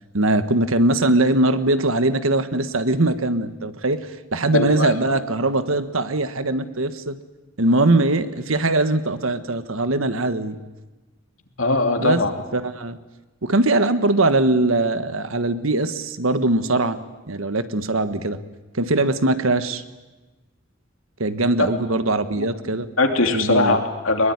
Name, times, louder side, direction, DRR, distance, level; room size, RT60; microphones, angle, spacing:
voice 1, 0.1-7.2 7.6-10.6 12.0-12.2 12.5-13.0 13.4-17.0 17.3-18.4 18.7-19.8 21.2-22.9 23.3-23.8, right 2 dB, 85° right, 11 dB, 1.5 m, -21 dB
voice 2, 4.5-4.9 11.6-12.3 21.6-21.7 22.4-22.5 23.0-24.3, left 2 dB, 75° left, 4 dB, 2.9 m, -20 dB
23.0 x 21.5 x 9.6 m, 1.2 s
head